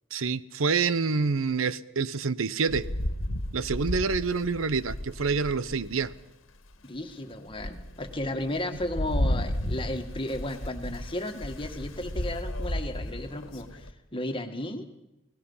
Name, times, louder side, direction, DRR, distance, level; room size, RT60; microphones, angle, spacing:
voice 1, 0.1-2.9 3.5-6.1, right 5 dB, 90° right, 16 dB, 0.8 m, -27 dB
Rain, 2.7-6.2 6.7-6.8 7.3-13.9, left 1 dB, 90° left, 1.7 m, -33 dB
voice 2, 6.8-14.9, left 1 dB, 25° left, 6 dB, 1.8 m, -34 dB
30.0 x 18.5 x 5.6 m, 0.96 s
head